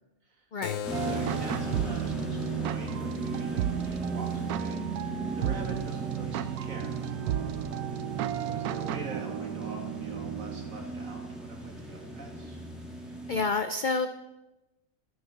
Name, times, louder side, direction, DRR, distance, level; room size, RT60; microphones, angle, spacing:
voice 1, 0.5-0.8 7.8-7.9 13.3-14.1, left 4 dB, 85° left, 9 dB, 0.4 m, -29 dB
Keyboard (musical), 0.6-5.7, left 9 dB, 70° left, 0.9 m, -42 dB
sound 1, 0.8-13.4, equal, ahead, 1.9 m, -38 dB
sound 2, 0.9-10.8, right 11 dB, 80° right, 1.1 m, -33 dB
voice 2, 1.0-7.0 8.4-12.6, right 2 dB, 60° right, 2 dB, 2.4 m, -44 dB
11.0 x 8.3 x 5.8 m, 0.98 s
omnidirectional pair, 1.6 m